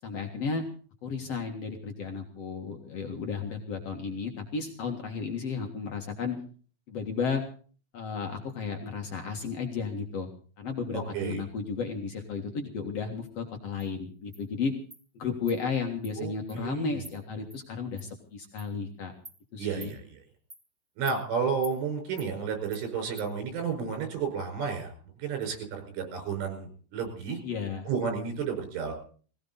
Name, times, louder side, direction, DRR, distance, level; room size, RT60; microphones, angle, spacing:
voice 1, 0.0-0.6 1.0-6.4 6.9-7.4 7.9-10.3 10.6-14.7 15.1-19.1 19.5-19.9 27.4-27.9, left 5 dB, 85° left, 3 dB, 1.4 m, -33 dB
voice 2, 10.9-11.4 16.2-17.0 19.6-20.2 21.0-24.9 25.2-27.4 27.9-28.9, right 6 dB, 70° right, 4 dB, 7.4 m, -32 dB
Insect, 13.8-13.9 14.3-14.4 14.9-15.0 15.5-15.6 16.0-16.1 16.5-16.6 17.0-17.1 17.5-17.6 18.0-18.1 18.6-18.7 19.2-19.4 19.8-19.9 20.5-20.6 21.1-21.2 21.6-21.8 22.2-22.3 22.7-22.8 23.2-23.3, right 1 dB, 10° right, 1.6 m, -46 dB
20.5 x 17.0 x 4.0 m, 0.42 s
omnidirectional pair, 5.9 m